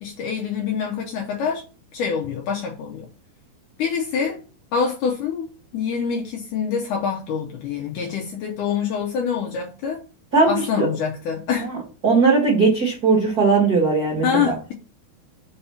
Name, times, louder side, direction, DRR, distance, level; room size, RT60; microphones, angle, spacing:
voice 1, 0.0-1.6 1.9-3.1 3.8-4.4 4.7-10.0 10.5-11.7 14.2-14.7, left 6 dB, 80° left, 1.8 m, -25 dB
voice 2, 10.3-10.9 12.0-14.5, right 4 dB, 50° right, 1.1 m, -18 dB
5.6 x 4.2 x 5.6 m
omnidirectional pair, 4.7 m